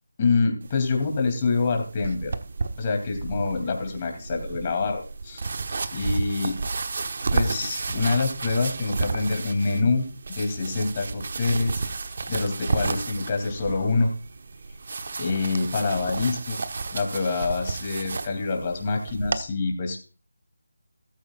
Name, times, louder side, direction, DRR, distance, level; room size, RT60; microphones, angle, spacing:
voice 1, 0.2-2.3 2.8-5.4 5.9-6.6 7.3-10.1 10.4-11.8 12.3-14.1 15.2-16.6 16.9-20.1, left 4 dB, 30° left, 3 dB, 2.8 m, -26 dB
sound 1, 0.6-19.4, right 4 dB, 50° right, 1.1 m, -32 dB
14.0 x 13.0 x 2.5 m, 0.36 s
figure-of-eight pair, 165°, 0 cm